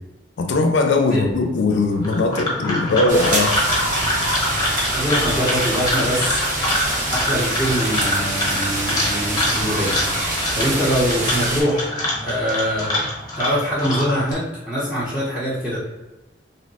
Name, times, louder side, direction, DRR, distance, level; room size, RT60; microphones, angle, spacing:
voice 1, 0.4-3.6, left 3 dB, 85° left, 4 dB, 0.4 m, -19 dB
sound 1, 2.0-14.3, left 1 dB, 25° left, 0.8 m, -25 dB
sound 2, 3.1-11.6, right 1 dB, 45° right, 0.8 m, -25 dB
voice 2, 4.7-6.4 7.1-9.9 10.2-13.0 13.3-15.8, equal, 10° right, -11 dB, 0.7 m, -23 dB
2.7 x 2.1 x 4.0 m, 1.1 s
head